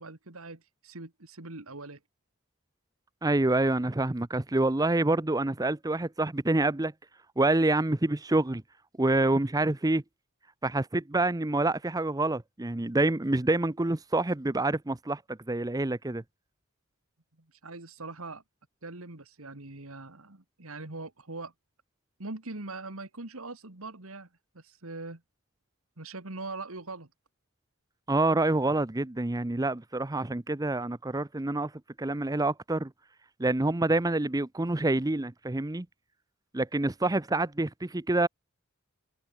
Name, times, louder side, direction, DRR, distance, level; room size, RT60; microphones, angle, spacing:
voice 1, 0.0-2.0 17.4-18.4 18.8-21.5 22.2-24.3 24.5-25.2 26.0-27.1, right 3 dB, 70° right, 2.3 m, -42 dB
voice 2, 3.2-6.9 7.4-8.6 9.0-10.0 10.6-16.2 28.1-31.7 32.0-32.9 33.4-35.9 36.5-38.3, right 2 dB, 15° right, 0.7 m, -27 dB
head